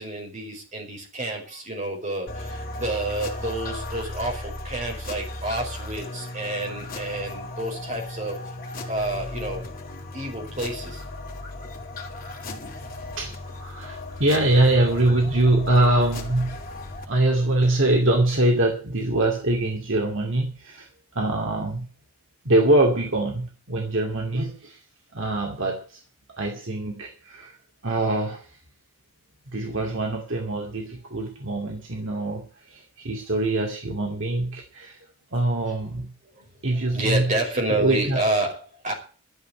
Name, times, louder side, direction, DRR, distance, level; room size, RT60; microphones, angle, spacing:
voice 1, 0.0-8.4 8.9-9.6 10.1-11.0 12.8-13.0 35.7-35.8 36.3-36.5 36.9-38.9, right 2 dB, 35° right, 1 dB, 5.2 m, -29 dB
sound 1, 2.3-17.0, left 2 dB, 40° left, 2.8 m, -36 dB
voice 2, 13.2-16.6 17.0-20.9 21.1-21.9 22.4-24.8 25.1-26.0 26.3-27.6 27.8-28.5 29.5-35.1 35.3-36.1 36.6-37.3 37.7-38.2, right 2 dB, 55° right, 1 dB, 2.2 m, -23 dB
12.5 x 7.1 x 9.1 m, 0.40 s
head